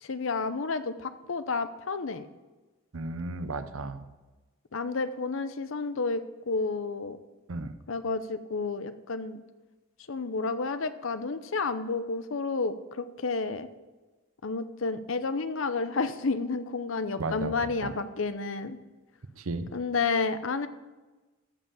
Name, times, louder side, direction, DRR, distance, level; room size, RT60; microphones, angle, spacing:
voice 1, 0.0-2.3 4.7-7.2 7.9-9.4 10.1-13.7 14.4-18.8 19.7-20.7, left 4 dB, 70° left, 12 dB, 0.7 m, -31 dB
voice 2, 2.9-4.1 7.5-7.7 17.2-17.5 17.8-17.9 19.4-19.7, right 2 dB, 85° right, 11 dB, 0.8 m, -34 dB
14.0 x 5.5 x 7.1 m, 1.2 s
head